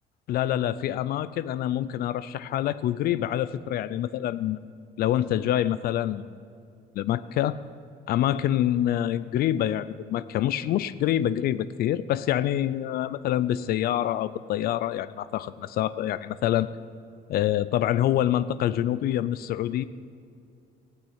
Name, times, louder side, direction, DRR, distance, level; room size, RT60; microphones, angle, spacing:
voice 1, 0.3-4.6 5.0-6.3 7.0-7.6 8.1-16.7 17.3-19.8, left 12 dB, 65° left, 15 dB, 0.4 m, -26 dB
15.0 x 6.3 x 10.0 m, 2.5 s
cardioid pair, 110°, 17 cm